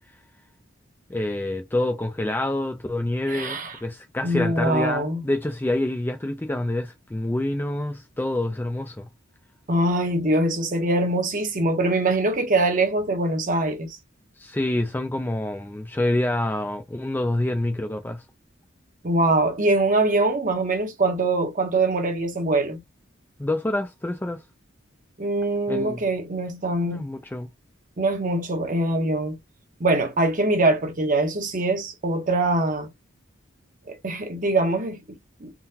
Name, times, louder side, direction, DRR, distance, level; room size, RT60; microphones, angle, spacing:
voice 1, 1.1-9.1 14.4-18.2 23.4-24.4 25.7-26.0 26.9-27.5, left 1 dB, 10° left, 0.3 m, -27 dB
voice 2, 3.3-3.8 4.2-5.2 9.7-14.0 19.0-22.8 25.2-27.1 28.0-29.4 29.8-32.9 33.9-35.5, right 2 dB, 40° right, 0.9 m, -23 dB
3.8 x 2.2 x 2.7 m
head